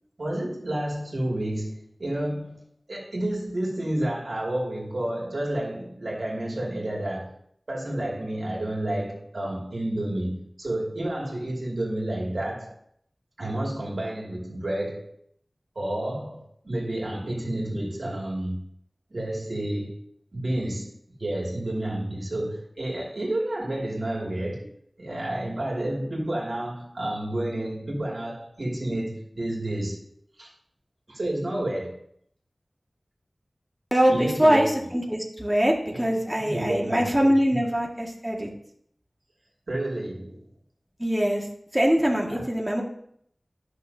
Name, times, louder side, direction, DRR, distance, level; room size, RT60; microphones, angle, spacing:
voice 1, 0.2-1.7 2.0-2.6 2.9-7.3 7.7-12.7 13.4-15.1 15.7-18.6 19.1-20.0 20.3-20.9 21.2-24.7 25.0-30.0 30.4-30.5 31.1-32.0 34.1-34.6 35.9-36.1 36.4-37.3 39.7-40.5 42.3-42.4, right 1 dB, 75° right, -3 dB, 2.5 m, -30 dB
voice 2, 33.9-38.5 41.0-41.4 41.7-42.8, equal, 15° right, -1 dB, 2.0 m, -23 dB
13.0 x 6.3 x 2.8 m, 0.67 s
wide cardioid pair, 45°, 0 cm